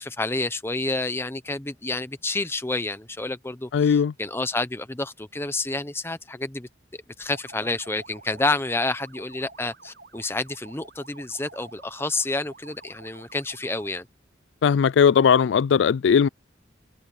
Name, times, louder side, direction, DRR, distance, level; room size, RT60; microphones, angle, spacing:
voice 1, 0.0-14.1, left 2 dB, 15° left, 0.8 m, -29 dB
voice 2, 3.7-4.1 14.6-16.3, left 7 dB, 70° left, 0.3 m, -18 dB
sound 1, 7.2-14.0, right 3 dB, 60° right, 3.6 m, -49 dB
head